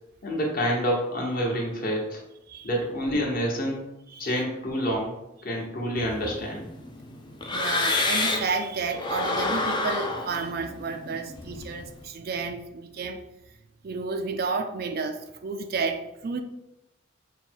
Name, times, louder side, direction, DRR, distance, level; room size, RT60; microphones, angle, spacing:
voice 1, 0.2-2.2 2.6-3.8 4.2-5.1 5.4-6.7, equal, 45° left, -1 dB, 1.1 m, -27 dB
voice 2, 4.1-4.4 7.5-13.2 13.8-16.4, right 4 dB, 50° right, 6 dB, 0.3 m, -31 dB
sound 1, 6.0-8.6 8.9-12.0, left 3 dB, 20° left, 0.4 m, -29 dB
5.3 x 2.2 x 4.5 m, 0.91 s
head